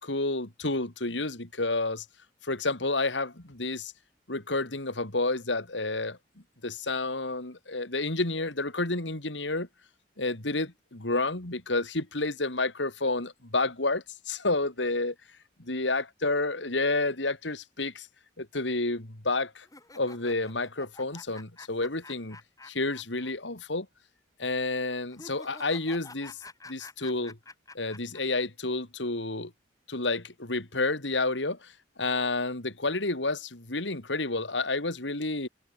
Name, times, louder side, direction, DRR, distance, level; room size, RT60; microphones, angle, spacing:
voice 1, 0.0-2.1 2.4-3.9 4.3-6.2 6.6-9.7 10.2-15.2 15.6-18.1 18.4-19.7 20.0-22.4 22.7-23.9 24.4-26.4 26.7-27.4 27.8-29.5 29.9-31.7 32.0-35.5, left 2 dB, 90° left, 3.4 m, -30 dB
sound 1, 19.6-23.3 23.6-23.7 25.1-28.2, left 3 dB, 20° left, 7.2 m, -49 dB
head